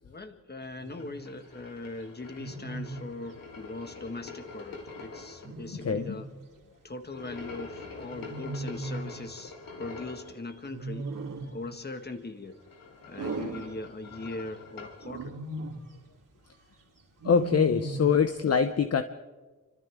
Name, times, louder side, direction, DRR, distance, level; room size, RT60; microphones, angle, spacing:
voice 1, 0.0-6.3 6.8-9.5 9.8-11.1 11.5-12.6 13.1-15.4, left 2 dB, 30° left, 6 dB, 1.9 m, -40 dB
Wild animals, 0.8-1.2 2.4-3.1 5.4-6.4 8.1-9.2 10.7-11.6 13.2-14.3 15.0-15.9 17.2-18.2, right 2 dB, 75° right, 3.1 m, -38 dB
sound 1, 0.9-5.5 7.1-10.3 12.4-15.0, left 4 dB, 90° left, 3.8 m, -45 dB
voice 2, 5.8-6.2 17.2-19.0, left 6 dB, 50° left, 9 dB, 0.9 m, -24 dB
30.0 x 25.5 x 3.7 m, 1.3 s
wide cardioid pair, 110°, 33 cm